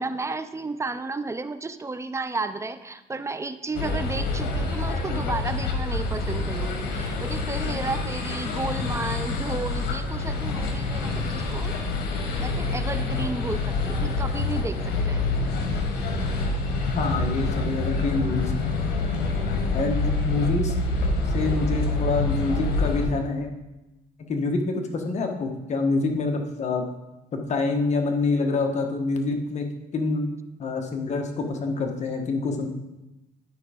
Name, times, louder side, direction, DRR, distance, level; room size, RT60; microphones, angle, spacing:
voice 1, 0.0-11.8 12.4-15.3, right 3 dB, 15° right, 11 dB, 0.4 m, -33 dB
sound 1, 3.7-23.1, left 3 dB, 80° left, 1.5 m, -27 dB
voice 2, 16.9-18.5 19.7-20.7 21.3-23.5 24.2-26.9 27.3-29.7 29.9-30.3 30.6-32.7, left 3 dB, 40° left, 4 dB, 1.3 m, -26 dB
11.5 x 4.5 x 5.1 m, 0.99 s
cardioid pair, 110°, 17 cm